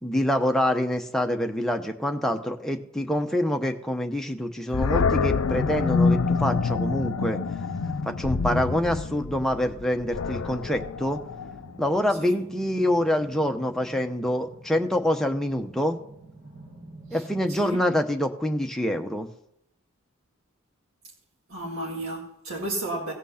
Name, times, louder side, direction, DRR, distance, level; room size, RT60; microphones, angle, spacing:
voice 1, 0.0-7.4 8.0-11.2 11.8-16.0 17.1-19.3, left 1 dB, ahead, 0.8 m, -26 dB
Animal, 4.7-11.8, left 4 dB, 75° left, 0.5 m, -26 dB
sound 1, 10.6-17.7, right 1 dB, 50° right, 1.9 m, -48 dB
voice 2, 21.5-23.1, right 2 dB, 70° right, 1.9 m, -33 dB
17.0 x 6.0 x 5.7 m
head